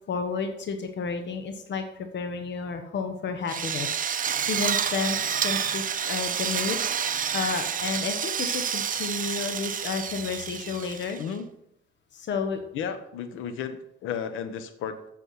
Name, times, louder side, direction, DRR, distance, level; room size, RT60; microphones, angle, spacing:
voice 1, 0.1-4.0 4.5-11.2 12.1-12.6, left 5 dB, 65° left, 6 dB, 1.3 m, -31 dB
Drill, 3.5-11.3, right 8 dB, 45° right, 0.7 m, -29 dB
voice 2, 12.7-15.1, left 7 dB, 90° left, 10 dB, 1.2 m, -33 dB
8.5 x 7.0 x 5.7 m, 0.75 s
cardioid pair, 90°, 20 cm